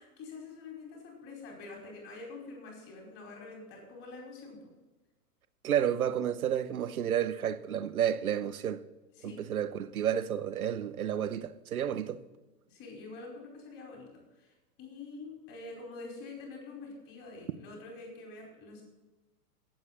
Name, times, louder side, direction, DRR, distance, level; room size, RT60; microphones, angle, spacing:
voice 1, 0.0-4.6 9.1-9.4 12.7-18.8, left 3 dB, 30° left, 4.8 m, -46 dB
voice 2, 5.6-8.8 9.2-12.2, right 9 dB, 65° right, 1.0 m, -31 dB
18.0 x 7.8 x 4.2 m
figure-of-eight pair, 105°, 47 cm